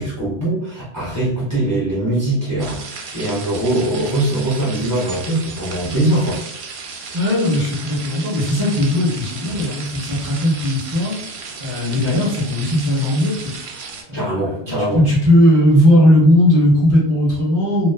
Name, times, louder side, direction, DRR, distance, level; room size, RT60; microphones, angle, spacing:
voice 1, 0.0-6.4 14.1-15.0, right 1 dB, 15° left, -8 dB, 0.9 m, -21 dB
sound 1, 2.6-14.0, right 4 dB, 70° right, 0.8 m, -34 dB
voice 2, 7.1-11.2 11.6-13.5 14.1-17.9, left 1 dB, 15° right, -8 dB, 1.2 m, -17 dB
3.1 x 2.2 x 2.3 m, 0.75 s
omnidirectional pair, 1.1 m